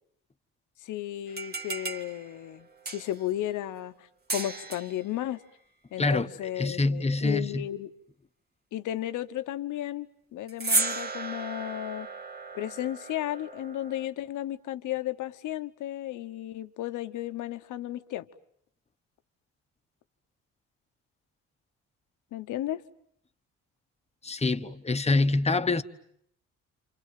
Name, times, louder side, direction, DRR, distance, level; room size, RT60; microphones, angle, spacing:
voice 1, 0.8-5.4 5.9-7.9 8.7-10.1 10.3-12.1 12.5-18.3 22.3-22.8, left 13 dB, 80° left, 1.2 m, -34 dB
sound 1, 1.3-3.3 4.3-5.0 10.5-14.1, right 3 dB, 30° right, 2.1 m, -34 dB
voice 2, 6.0-7.7 24.2-25.8, left 3 dB, 20° left, 1.2 m, -26 dB
28.5 x 27.5 x 7.6 m
cardioid pair, 90°, 30 cm